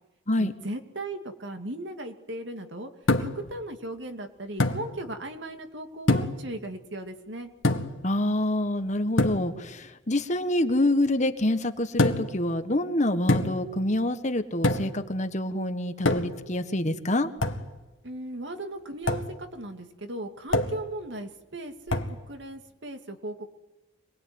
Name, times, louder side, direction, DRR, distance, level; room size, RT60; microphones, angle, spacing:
voice 1, 0.4-2.9 3.2-7.5 18.0-19.2 19.5-23.5, right 1 dB, 65° right, 6 dB, 2.5 m, -37 dB
sound 1, 3.1-3.5 4.6-4.9 6.1-6.5 7.6-8.0 9.2-9.5 12.0-12.4 13.3-13.7 14.6-15.0 16.1-16.5 17.4-17.7 19.1-19.3 20.5-20.9 21.9-22.2, left 2 dB, 85° left, 1.9 m, -25 dB
voice 2, 8.0-17.3, left 1 dB, 35° left, 9 dB, 1.5 m, -26 dB
26.0 x 20.5 x 9.6 m, 1.1 s
head